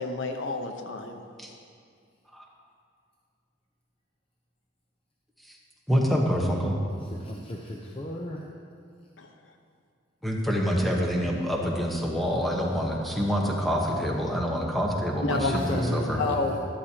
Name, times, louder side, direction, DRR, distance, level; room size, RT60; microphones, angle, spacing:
voice 1, 0.0-1.2 9.2-9.5 15.2-15.5 16.2-16.6, left 3 dB, 80° left, 4 dB, 0.9 m, -30 dB
voice 2, 5.9-6.8 10.2-16.2, equal, ahead, -2 dB, 1.1 m, -26 dB
voice 3, 7.0-8.4 15.3-16.6, left 1 dB, 30° left, -2 dB, 0.7 m, -32 dB
13.0 x 11.5 x 2.9 m, 2.3 s
head